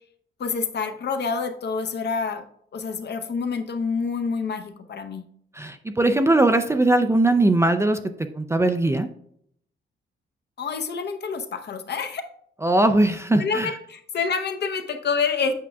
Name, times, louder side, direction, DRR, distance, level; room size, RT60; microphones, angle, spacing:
voice 1, 0.4-2.4 2.7-5.2 10.6-12.2 13.4-15.5, left 5 dB, 55° left, 6 dB, 0.8 m, -27 dB
voice 2, 5.5-8.0 8.3-9.1 12.6-13.7, right 2 dB, 15° right, 7 dB, 0.4 m, -20 dB
8.4 x 6.0 x 2.3 m, 0.68 s
wide cardioid pair, 135°, 21 cm